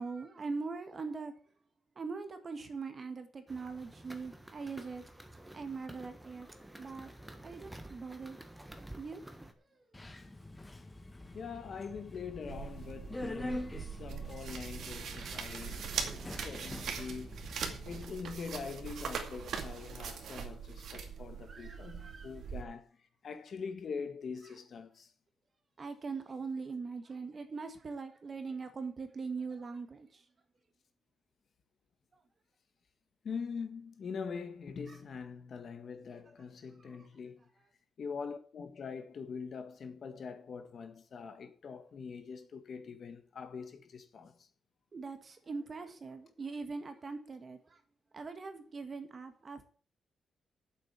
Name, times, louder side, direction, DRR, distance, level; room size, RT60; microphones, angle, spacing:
voice 1, 0.0-1.3 2.0-5.0 5.5-6.5 6.8-7.1 7.4-8.4 9.0-9.3 21.5-22.3 25.8-30.2 34.9-35.0 36.8-36.9 44.9-47.8 48.1-49.6, right 4 dB, 35° right, 1.7 m, -41 dB
sound 1, 3.5-9.5, right 1 dB, 5° right, 1.5 m, -51 dB
Subway metro underground, 9.9-18.0, left 1 dB, 15° left, 1.4 m, -45 dB
voice 2, 11.3-17.4 17.9-22.9 23.2-25.1 33.2-37.5 38.0-44.5, left 5 dB, 50° left, 1.8 m, -43 dB
sound 2, 12.5-22.6, right 6 dB, 75° right, 2.3 m, -41 dB
9.0 x 7.7 x 8.3 m
wide cardioid pair, 145°, 0 cm